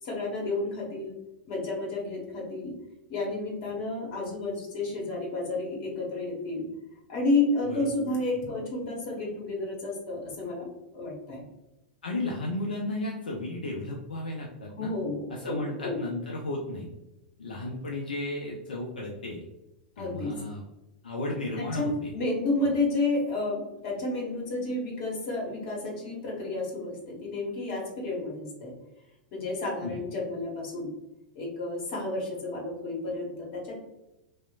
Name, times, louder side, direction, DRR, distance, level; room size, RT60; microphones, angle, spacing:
voice 1, 0.0-1.1 1.5-2.7 3.1-6.7 7.1-10.7 10.9-11.4 14.7-16.0 20.0-20.3 21.6-28.7 29.3-30.9 31.3-33.8, left 2 dB, 50° left, -2 dB, 1.0 m, -31 dB
voice 2, 12.0-14.9 15.3-16.9 17.4-19.4 20.0-20.6 21.0-22.1 29.8-30.0, left 2 dB, 80° left, -1 dB, 0.4 m, -34 dB
2.9 x 2.0 x 2.4 m, 0.97 s
figure-of-eight pair, 100°, 5 cm